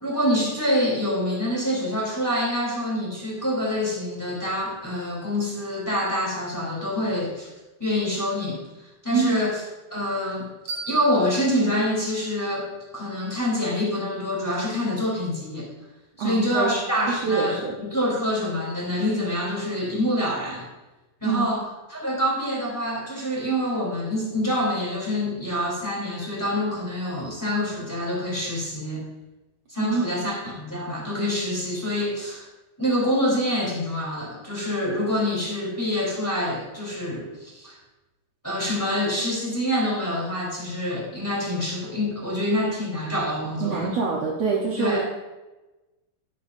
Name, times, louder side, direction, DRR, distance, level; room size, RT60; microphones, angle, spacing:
voice 1, 0.0-7.5 7.8-9.6 9.9-10.4 10.9-15.7 16.2-20.7 21.2-29.0 29.7-32.5 32.8-37.8 38.4-43.9 44.8-45.0, left 1 dB, 5° left, -4 dB, 3.1 m, -26 dB
sound 1, 10.7-13.5, right 3 dB, 85° right, 5.1 m, -41 dB
voice 2, 16.2-16.8 17.1-17.7 21.2-21.6 29.8-30.1 43.6-45.0, right 6 dB, 65° right, -3 dB, 1.9 m, -25 dB
13.5 x 10.5 x 2.6 m, 1.1 s
omnidirectional pair, 3.7 m